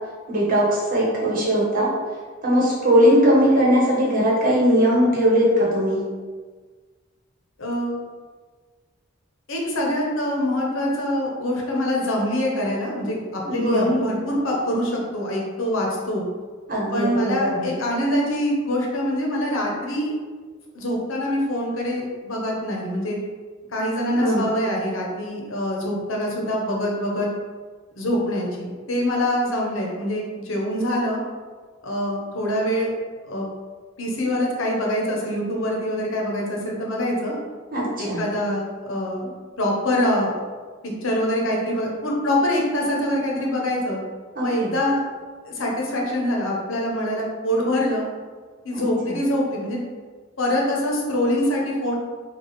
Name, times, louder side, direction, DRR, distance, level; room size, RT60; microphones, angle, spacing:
voice 1, 0.3-1.9 2.4-6.0 13.4-14.0 16.7-17.7 24.1-24.5 37.7-38.2 44.3-44.8 48.7-49.1, equal, 45° right, -5 dB, 1.1 m, -20 dB
voice 2, 7.6-8.0 9.5-16.2 16.9-20.2 20.7-23.2 23.7-27.3 27.9-31.2 31.8-32.9 33.2-33.5 34.0-37.4 38.0-39.3 39.6-40.3 40.8-44.0 44.4-45.0 45.4-48.1 48.6-49.8 50.4-52.0, left 1 dB, 80° left, -1 dB, 0.8 m, -24 dB
3.3 x 2.3 x 4.0 m, 1.5 s
head